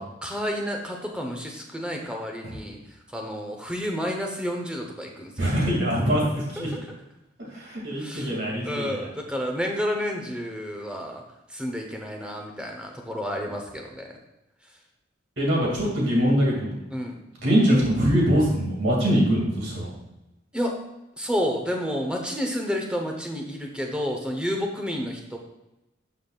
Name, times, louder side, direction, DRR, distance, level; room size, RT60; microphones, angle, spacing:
voice 1, 0.0-2.8 3.1-5.5 6.6-6.8 7.9-8.3 8.6-11.2 11.5-14.1 16.9-17.2 20.5-20.8 21.2-25.4, equal, 5° right, 2 dB, 0.9 m, -30 dB
voice 2, 5.4-6.7 7.5-9.1 15.4-16.8 17.4-19.9, equal, 70° right, -4 dB, 2.4 m, -23 dB
12.0 x 5.6 x 2.4 m, 0.93 s
head